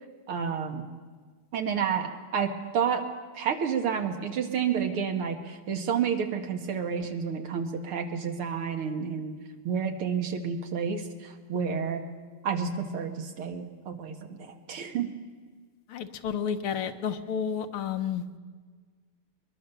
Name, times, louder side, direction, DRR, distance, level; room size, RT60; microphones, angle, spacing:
voice 1, 0.3-0.8 1.5-3.0 3.3-12.1 12.4-15.1, right 7 dB, 85° right, 5 dB, 2.5 m, -30 dB
voice 2, 15.9-18.4, left 7 dB, 80° left, 7 dB, 1.9 m, -31 dB
22.5 x 21.5 x 7.0 m, 1.5 s
omnidirectional pair, 2.4 m